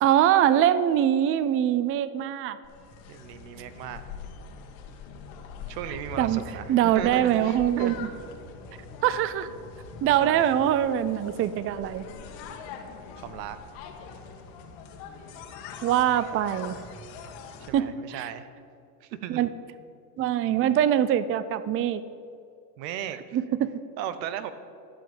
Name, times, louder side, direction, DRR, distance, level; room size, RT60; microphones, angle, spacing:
voice 1, 0.0-2.6 6.2-6.4 6.7-8.0 9.0-9.5 10.0-12.1 15.8-16.8 17.7-18.3 19.3-19.5 20.2-22.0 23.3-23.8, right 11 dB, 30° right, 15 dB, 0.4 m, -23 dB
sound 1, 2.6-17.7, left 5 dB, 65° left, 1.8 m, -43 dB
voice 2, 3.1-4.1 5.7-7.9 10.2-10.5 13.2-13.6 17.7-18.5 19.0-19.5 22.8-23.2 24.0-24.5, right 10 dB, 90° right, 12 dB, 1.0 m, -36 dB
13.0 x 5.4 x 8.7 m, 2.5 s
supercardioid pair, 120°, 49 cm